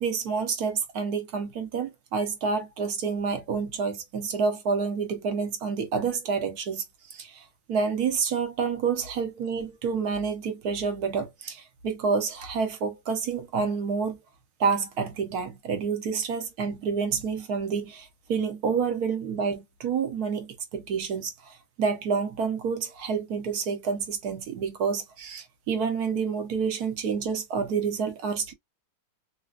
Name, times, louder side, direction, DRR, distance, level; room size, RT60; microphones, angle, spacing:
voice 1, 0.0-14.2 14.6-28.5, right 5 dB, 65° right, 1.1 m, -28 dB
3.2 x 2.7 x 2.3 m
omnidirectional pair, 2.0 m